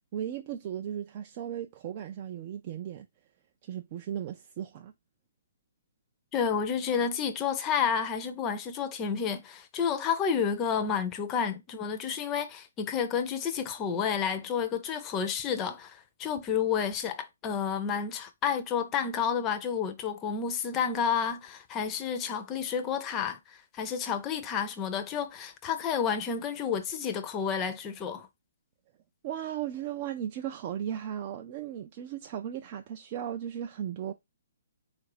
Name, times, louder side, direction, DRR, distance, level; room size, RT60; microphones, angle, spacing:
voice 1, 0.1-3.1 3.6-4.9 29.2-34.1, right 10 dB, 30° right, 0.3 m, -36 dB
voice 2, 6.3-28.3, left 7 dB, 15° left, 0.5 m, -30 dB
4.2 x 2.5 x 4.7 m
hypercardioid pair, 165°, 0 cm